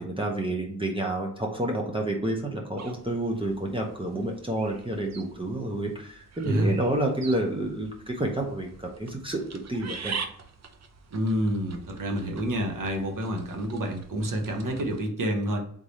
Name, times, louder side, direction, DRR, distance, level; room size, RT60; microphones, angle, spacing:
voice 1, 0.0-10.2, right 1 dB, 15° right, 0 dB, 0.7 m, -29 dB
sound 1, 2.8-15.0, right 5 dB, 50° right, 0.6 m, -44 dB
voice 2, 11.1-15.6, equal, 65° right, 3 dB, 1.0 m, -28 dB
3.7 x 3.3 x 4.1 m, 0.65 s
wide cardioid pair, 130°, 33 cm